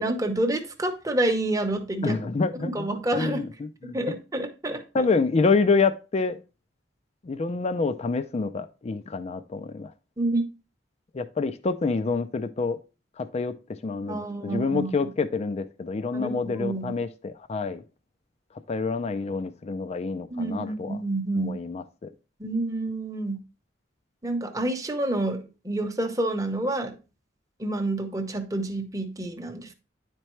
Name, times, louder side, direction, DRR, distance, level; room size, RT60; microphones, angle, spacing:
voice 1, 0.0-2.2 2.6-3.4 3.9-4.8 10.2-10.5 14.1-14.9 16.1-16.9 20.3-21.5 22.4-23.4 24.2-26.9 27.6-29.7, right 2 dB, 20° right, 0.8 m, -28 dB
voice 2, 2.0-4.0 4.9-6.4 7.2-9.9 11.1-12.8 13.2-13.6 13.8-17.8 18.7-21.0 21.4-22.1, left 4 dB, 35° left, 0.4 m, -27 dB
9.9 x 4.5 x 3.1 m
head